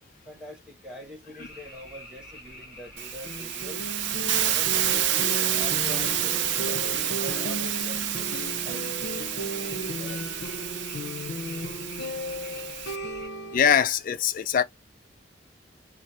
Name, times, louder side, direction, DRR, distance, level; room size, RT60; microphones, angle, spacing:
voice 1, 0.2-3.8 4.4-10.3, equal, 5° right, 1.0 m, -44 dB
sound 1, 1.4-13.3, left 1 dB, 15° left, 1.5 m, -46 dB
Hiss, 3.0-13.0, right 11 dB, 75° right, 0.4 m, -29 dB
sound 2, 3.2-13.6, equal, 90° left, 0.7 m, -35 dB
voice 2, 13.5-14.6, left 7 dB, 45° left, 0.3 m, -22 dB
3.3 x 2.0 x 2.8 m
head